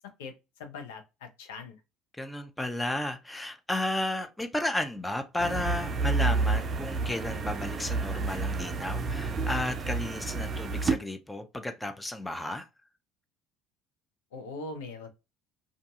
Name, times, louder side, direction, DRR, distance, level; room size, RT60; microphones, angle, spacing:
voice 1, 0.2-1.8 14.3-15.1, left 3 dB, 75° left, 0.6 m, -41 dB
voice 2, 2.2-12.7, left 1 dB, 10° left, 0.5 m, -33 dB
sound 1, 5.4-11.0, right 4 dB, 40° right, 0.5 m, -30 dB
2.6 x 2.5 x 2.4 m
hypercardioid pair, 65°, 0 cm